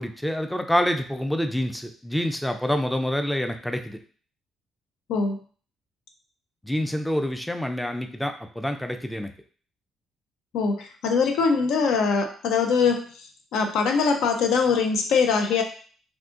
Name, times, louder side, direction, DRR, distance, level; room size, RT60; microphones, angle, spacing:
voice 1, 0.0-4.0 6.6-9.3, equal, 5° left, 6 dB, 0.4 m, -27 dB
voice 2, 10.5-13.3 13.5-15.6, left 5 dB, 85° left, 4 dB, 0.5 m, -22 dB
3.6 x 2.6 x 2.4 m, 0.43 s
cardioid pair, 90°, 0 cm